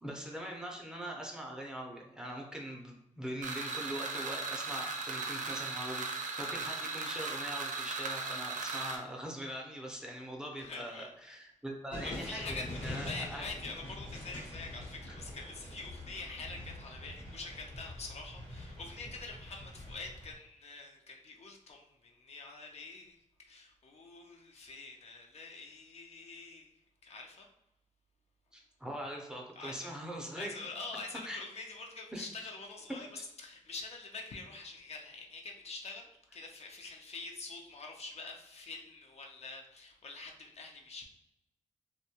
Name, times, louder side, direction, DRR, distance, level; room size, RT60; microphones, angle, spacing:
voice 1, 0.0-13.4 15.1-15.2 28.5-30.5 31.3-31.4 32.1-32.3 33.1-33.2, equal, 5° right, -1 dB, 0.5 m, -42 dB
sound 1, 3.4-9.0, right 4 dB, 80° right, 0.5 m, -37 dB
voice 2, 10.6-11.1 12.0-27.5 29.6-29.9 30.4-41.1, left 3 dB, 55° left, 2 dB, 0.4 m, -46 dB
sound 2, 11.9-20.3, left 1 dB, 90° left, 1.0 m, -44 dB
2.6 x 2.2 x 2.8 m, 0.86 s
wide cardioid pair, 115°, 13 cm